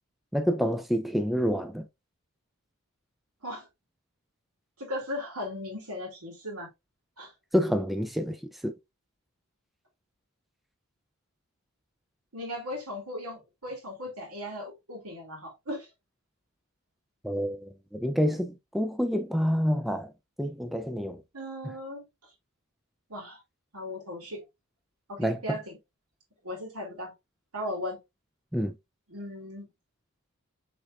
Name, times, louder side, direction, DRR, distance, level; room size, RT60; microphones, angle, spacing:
voice 1, 0.3-1.9 7.5-8.7 17.2-20.1 20.4-21.2 21.6-21.7 25.2-25.6 28.5-28.7, equal, ahead, 0.3 m, -28 dB
voice 2, 4.8-6.7 7.2-7.3 12.3-15.9 21.3-22.0 23.1-23.4 23.7-24.4 25.1-25.8 26.4-27.1 27.5-28.0 29.1-29.7, left 1 dB, 80° right, 2.4 m, -37 dB
6.1 x 3.4 x 2.3 m
head